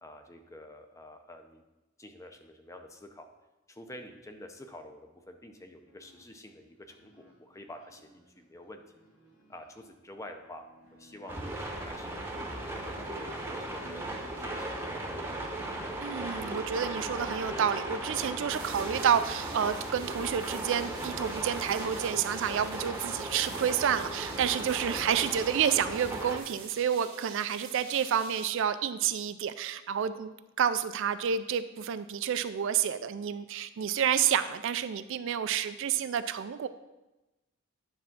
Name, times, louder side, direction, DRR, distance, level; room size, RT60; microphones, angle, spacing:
voice 1, 0.0-1.6 2.0-3.3 3.7-8.8 9.5-10.6 10.9-12.2 12.6-15.0, left 1 dB, 15° left, 5 dB, 0.6 m, -48 dB
sound 1, 5.8-25.5, right 1 dB, 85° left, 2.5 m, -55 dB
sound 2, 11.3-26.4, right 1 dB, 10° right, 0.9 m, -37 dB
voice 2, 16.0-36.7, right 8 dB, 65° right, 12 dB, 0.4 m, -29 dB
sound 3, 18.5-28.5, right 5 dB, 90° right, 1.2 m, -48 dB
9.6 x 3.6 x 5.9 m, 1.0 s
head